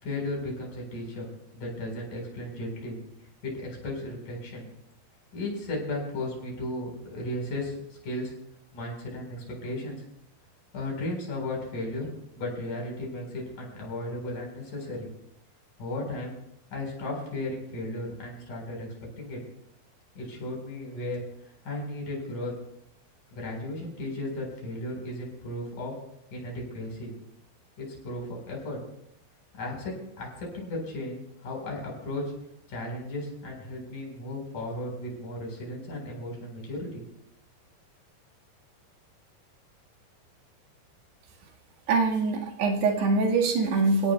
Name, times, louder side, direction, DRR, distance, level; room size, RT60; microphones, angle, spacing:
voice 1, 0.0-1.3 1.5-3.0 3.4-4.7 5.3-7.7 8.0-8.3 8.7-10.0 10.7-12.1 12.4-15.1 15.8-16.4 16.7-19.4 20.2-21.2 21.7-22.5 23.3-25.9 26.3-27.1 27.8-28.8 29.6-32.2 32.7-37.0, left 1 dB, 45° left, -1 dB, 5.7 m, -35 dB
voice 2, 41.9-44.1, right 3 dB, 70° right, 1 dB, 3.8 m, -24 dB
28.0 x 17.0 x 2.3 m, 0.77 s
omnidirectional pair, 5.0 m